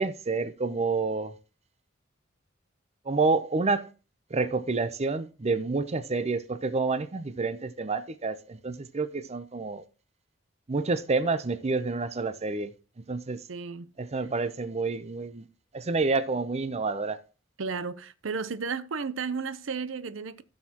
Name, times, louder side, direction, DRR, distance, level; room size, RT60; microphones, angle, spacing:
voice 1, 0.0-1.3 3.1-3.9 4.3-9.8 10.7-12.7 13.1-13.4 14.0-15.5 15.7-17.2, right 3 dB, 35° right, 0.6 m, -28 dB
voice 2, 13.5-13.9 17.6-20.4, right 5 dB, 70° right, 0.7 m, -33 dB
15.0 x 6.4 x 2.9 m
head